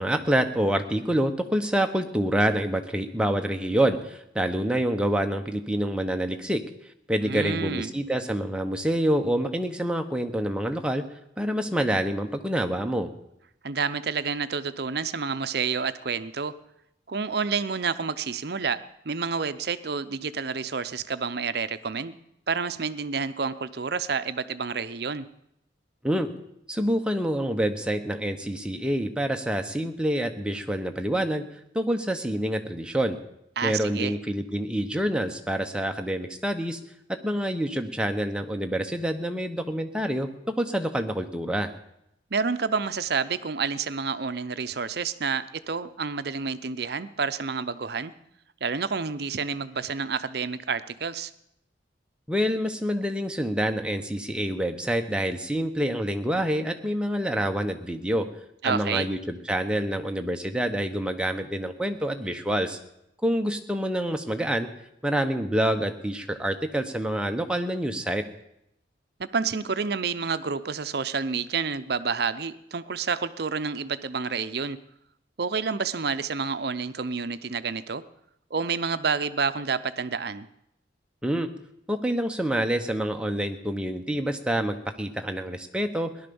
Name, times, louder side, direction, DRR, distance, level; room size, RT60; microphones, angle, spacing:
voice 1, 0.0-6.6 7.1-11.0 11.4-13.1 26.0-26.3 26.7-31.4 31.7-33.2 33.6-36.8 37.1-41.7 52.3-58.3 58.6-62.8 63.2-64.7 65.0-68.2 81.2-81.5 81.9-86.1, right 1 dB, 5° right, 5 dB, 1.0 m, -27 dB
voice 2, 7.2-7.9 13.6-16.5 17.1-18.8 19.0-22.2 22.5-25.2 33.6-34.1 42.3-48.1 48.6-51.3 58.6-59.1 69.2-74.8 75.4-78.0 78.5-80.5, right 5 dB, 55° right, 12 dB, 0.6 m, -29 dB
17.5 x 11.5 x 7.0 m, 0.80 s
head